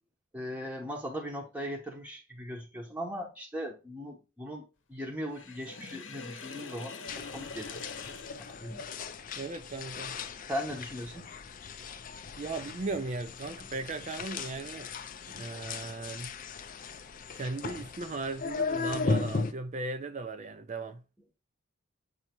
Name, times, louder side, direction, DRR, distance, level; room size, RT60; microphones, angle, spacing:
voice 1, 0.3-7.9 8.4-8.9 10.5-11.3, equal, 5° right, 0.9 m, -39 dB
Sink (filling or washing), 5.3-9.3, left 4 dB, 55° left, 0.9 m, -44 dB
sound 1, 7.1-19.5, left 4 dB, 40° left, 0.5 m, -37 dB
voice 2, 9.4-10.2 12.4-14.9 15.3-16.3 17.3-21.0, right 3 dB, 35° right, 0.4 m, -37 dB
7.9 x 2.8 x 4.3 m
head